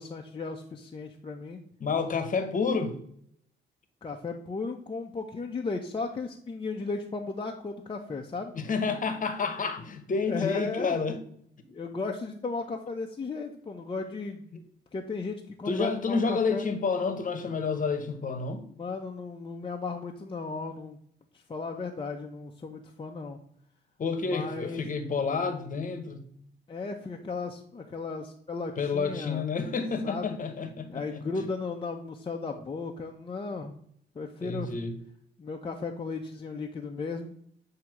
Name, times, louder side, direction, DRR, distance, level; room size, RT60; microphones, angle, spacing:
voice 1, 0.0-1.6 4.0-8.5 10.3-11.0 11.7-14.6 14.9-16.7 18.8-21.0 21.3-23.4 24.2-24.9 26.7-29.5 30.0-30.4 30.9-33.7 34.1-34.7 35.4-37.3, left 4 dB, 25° left, 0.7 m, -35 dB
voice 2, 1.8-3.0 8.5-11.2 14.5-14.6 15.7-18.6 24.0-26.2 28.8-31.2 34.4-34.9, left 4 dB, 40° left, 1.1 m, -29 dB
7.7 x 2.9 x 5.8 m
cardioid pair, 90°, 20 cm